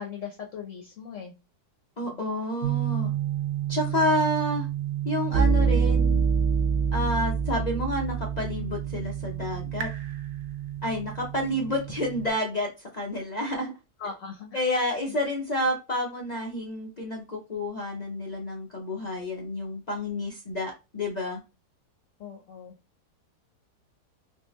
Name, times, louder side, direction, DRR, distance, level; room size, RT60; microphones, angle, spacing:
voice 1, 0.0-1.3 2.1-2.2 14.0-14.6 22.2-22.7, left 6 dB, 60° left, 2 dB, 0.9 m, -39 dB
voice 2, 2.0-3.1 3.7-4.7 5.0-6.2 6.9-9.9 10.8-13.7 14.5-21.4, left 1 dB, 80° left, -1 dB, 0.3 m, -29 dB
sound 1, 2.6-12.3, right 7 dB, 65° right, 0.8 m, -27 dB
3.7 x 2.6 x 3.0 m, 0.28 s
omnidirectional pair, 1.7 m